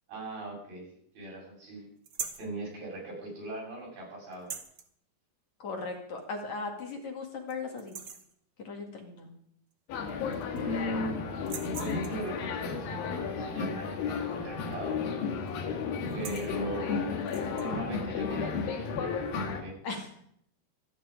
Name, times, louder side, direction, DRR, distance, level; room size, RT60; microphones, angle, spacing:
voice 1, 0.1-1.9 2.4-4.5 10.5-11.3 11.8-15.0 16.1-17.2 17.5-19.0 19.4-19.7, right 1 dB, 75° right, -3 dB, 9.5 m, -39 dB
sound 1, 2.0-2.5 4.3-4.9 6.2-6.3 6.8-6.9 7.3-7.5 7.8-8.3 9.7-9.8 10.1-10.8 11.4-12.3 14.6-14.9 15.2-15.5 16.0-16.5 17.2-17.7, right 7 dB, 55° right, 1.5 m, -42 dB
voice 2, 5.6-8.0 8.6-9.3 19.8-20.1, left 3 dB, 55° left, 2 dB, 3.2 m, -37 dB
sound 2, 9.9-19.6, left 5 dB, 75° left, 3.6 m, -33 dB
25.5 x 9.9 x 5.1 m, 0.68 s
omnidirectional pair, 4.2 m